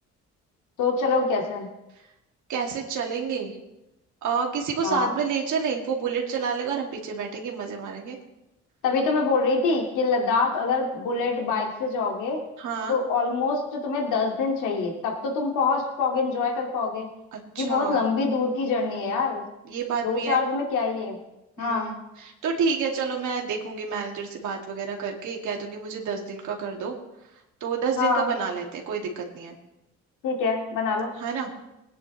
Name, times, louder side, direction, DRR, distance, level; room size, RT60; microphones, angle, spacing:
voice 1, 0.8-1.7 4.8-5.1 8.8-12.4 12.9-17.1 17.6-19.4 20.0-21.2 21.6-21.9 28.0-28.3 30.2-31.1, left 4 dB, 85° left, 1 dB, 2.2 m, -25 dB
voice 2, 2.5-3.6 4.2-8.2 12.6-13.0 17.3-18.1 19.7-20.4 21.6-26.9 27.6-29.6 31.2-31.5, right 6 dB, 75° right, 0 dB, 2.4 m, -29 dB
20.5 x 9.9 x 3.2 m, 0.93 s
cardioid pair, 90°, 30 cm